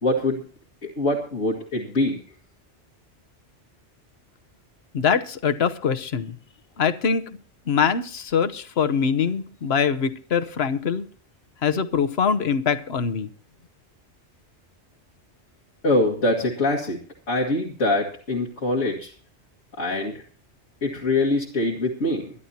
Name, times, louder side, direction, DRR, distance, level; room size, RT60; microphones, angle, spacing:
voice 1, 0.0-0.4 0.8-2.2 15.8-17.0 17.3-19.1 19.8-20.1 20.8-22.3, left 2 dB, 90° left, -4 dB, 2.3 m, -23 dB
voice 2, 4.9-6.4 6.8-7.3 7.7-11.0 11.6-13.3, left 6 dB, 60° left, 11 dB, 1.2 m, -23 dB
23.0 x 11.0 x 2.8 m, 0.44 s
omnidirectional pair, 1.2 m